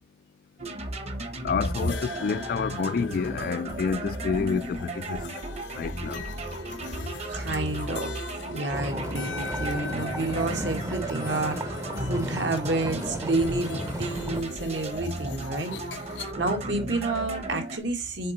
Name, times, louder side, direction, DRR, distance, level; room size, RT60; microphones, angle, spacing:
sound 1, 0.6-17.8, right 1 dB, 35° right, 1.0 m, -35 dB
voice 1, 1.4-5.3 5.8-6.3, left 5 dB, 50° left, 0.3 m, -29 dB
sound 2, 1.7-16.3, left 5 dB, 75° left, 0.8 m, -42 dB
voice 2, 7.2-15.8 16.4-18.3, right 2 dB, 70° right, 1.7 m, -30 dB
sound 3, 8.7-14.4, right 1 dB, 15° right, 0.6 m, -35 dB
6.6 x 4.3 x 4.1 m
head